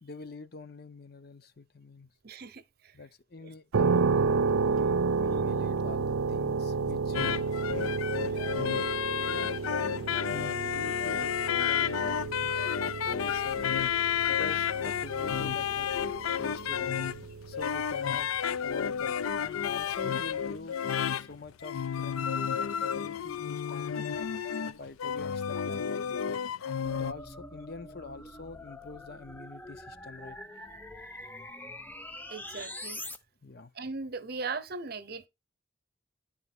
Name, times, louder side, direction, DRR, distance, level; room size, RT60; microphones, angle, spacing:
voice 1, 0.0-2.1 2.9-8.7 9.1-10.3 10.6-12.6 13.1-13.8 14.3-15.9 16.4-16.9 17.5-18.3 18.6-20.8 21.1-22.3 22.6-24.1 24.7-26.4 27.0-30.4 33.4-33.7, left 3 dB, 50° left, 0.7 m, -45 dB
voice 2, 2.2-3.0 3.4-3.5 32.3-33.0 33.7-35.3, right 4 dB, 50° right, 0.8 m, -38 dB
sound 1, 3.7-18.4, right 4 dB, 90° right, 0.5 m, -31 dB
sound 2, 7.1-27.1, left 8 dB, 85° left, 0.5 m, -31 dB
sound 3, 26.8-33.2, left 1 dB, 10° left, 0.6 m, -44 dB
11.0 x 4.1 x 6.0 m
head